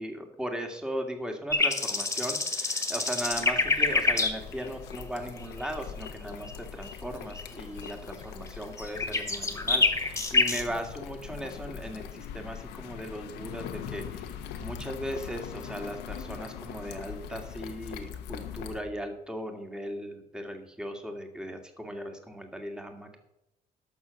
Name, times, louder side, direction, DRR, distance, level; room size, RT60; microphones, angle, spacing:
voice 1, 0.0-23.2, equal, 5° right, 5 dB, 1.9 m, -38 dB
sound 1, 1.5-4.4 4.6-4.7 4.9-5.3 5.6-5.7 6.0-6.1 6.4-6.5 6.8-6.9 7.3-7.4 7.8-7.9 8.2-8.5 8.8-10.6, left 3 dB, 15° left, 1.8 m, -27 dB
sound 2, 3.2-18.8, left 8 dB, 85° left, 1.2 m, -42 dB
12.0 x 6.4 x 6.9 m, 0.86 s
cardioid pair, 110°, 17 cm